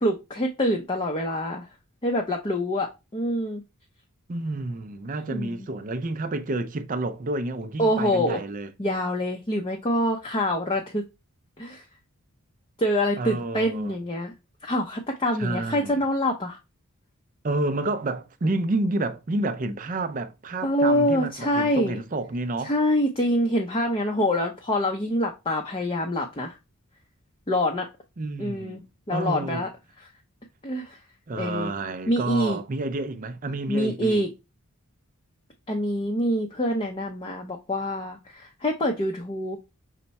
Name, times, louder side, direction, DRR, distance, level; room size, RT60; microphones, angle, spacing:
voice 1, 0.0-1.7 2.0-3.6 5.3-5.7 7.8-8.4 8.8-11.0 11.6-11.8 12.8-14.3 14.6-16.6 20.6-22.0 22.6-26.6 27.5-27.9 28.4-28.8 29.1-29.7 30.0-30.1 30.6-31.0 31.3-31.7 32.1-32.6 33.7-34.3 35.7-39.6, equal, 25° left, 0.5 m, -25 dB
voice 2, 4.3-8.7 13.2-14.0 15.4-16.0 17.4-22.7 28.2-28.8 29.1-29.7 31.3-34.2, right 2 dB, 35° right, 0.4 m, -29 dB
5.5 x 2.2 x 4.0 m
head